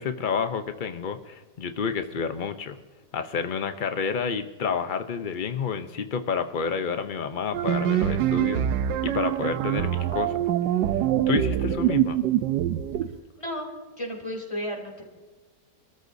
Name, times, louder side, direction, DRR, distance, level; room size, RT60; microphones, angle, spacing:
voice 1, 0.0-2.8 3.1-8.7 9.0-10.5 11.3-12.2, left 6 dB, 80° left, 8 dB, 0.4 m, -29 dB
sound 1, 7.5-13.2, right 11 dB, 85° right, 1.3 m, -24 dB
voice 2, 13.4-13.7 14.0-15.1, equal, 15° left, 1 dB, 3.3 m, -33 dB
24.5 x 13.5 x 2.7 m, 1.3 s
omnidirectional pair, 1.9 m